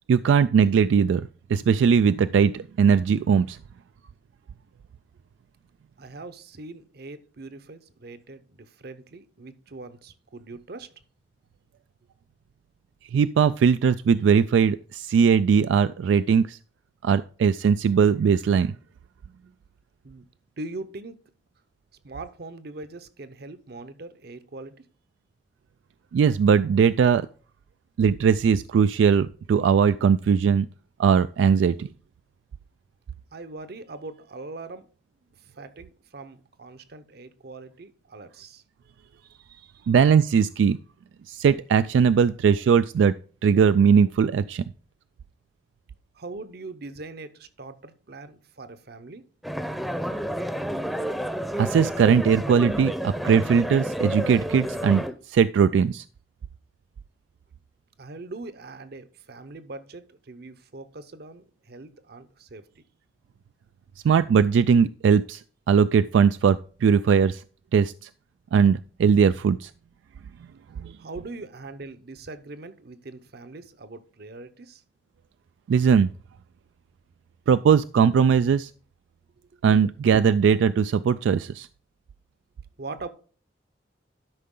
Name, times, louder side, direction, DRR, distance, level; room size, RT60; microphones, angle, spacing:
voice 1, 0.1-3.6 13.1-16.6 17.0-18.8 26.1-27.3 28.0-30.7 31.0-31.9 39.9-40.8 41.3-43.1 43.4-44.6 51.6-56.0 64.0-65.4 65.7-67.4 67.7-68.1 68.5-69.7 70.8-71.0 75.7-76.1 77.5-78.7 79.6-81.7, right 6 dB, 85° right, 0.3 m, -20 dB
voice 2, 6.0-11.0 20.0-20.2 20.6-21.2 22.0-24.8 33.3-34.9 35.2-39.9 46.1-49.3 58.0-62.8 71.0-74.8 82.8-83.1, right 3 dB, 60° right, 0.8 m, -41 dB
sound 1, 49.4-55.1, equal, ahead, 0.6 m, -30 dB
12.0 x 5.6 x 3.7 m
head